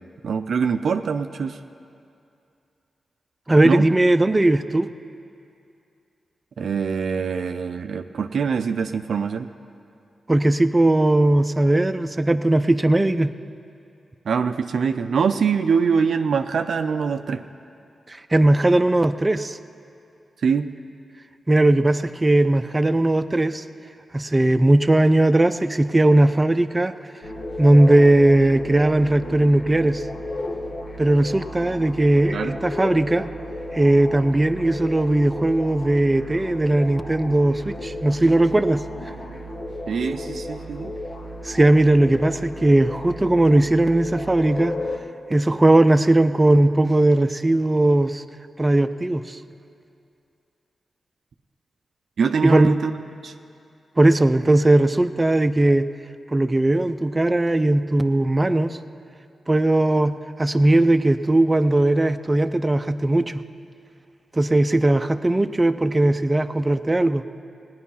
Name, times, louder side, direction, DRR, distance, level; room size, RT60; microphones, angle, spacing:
voice 1, 0.2-1.6 3.6-3.9 6.6-9.5 14.3-17.4 20.4-20.7 32.3-32.6 39.9-40.9 52.2-52.9 53.2-53.3, right 6 dB, 75° right, 7 dB, 0.5 m, -23 dB
voice 2, 3.5-4.9 10.3-13.3 18.1-19.6 21.5-23.6 24.1-26.9 27.6-30.0 31.0-33.2 33.7-38.8 41.4-44.8 45.3-48.2 48.6-49.4 52.4-52.8 54.0-55.9 56.3-58.8 59.5-63.4 64.3-67.2, right 1 dB, 30° right, 9 dB, 0.6 m, -18 dB
sound 1, 27.2-45.0, left 1 dB, 70° left, 1.3 m, -33 dB
17.5 x 9.5 x 5.6 m, 2.6 s
supercardioid pair, 40°, 0 cm